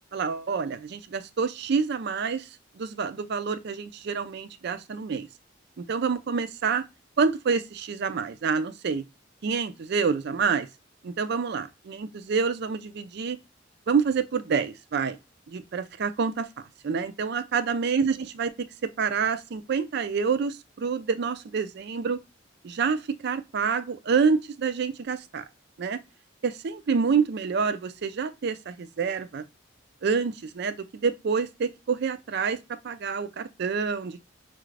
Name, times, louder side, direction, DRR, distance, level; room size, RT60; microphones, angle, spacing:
voice 1, 0.1-2.5 2.8-5.3 5.8-6.8 7.2-9.0 9.4-10.7 11.0-13.4 13.9-15.2 15.5-16.5 16.8-18.7 19.0-22.2 22.6-25.4 25.8-26.0 26.4-29.4 30.0-32.6 32.8-34.2, right 5 dB, 55° right, 0.4 m, -27 dB
5.8 x 2.5 x 3.2 m
head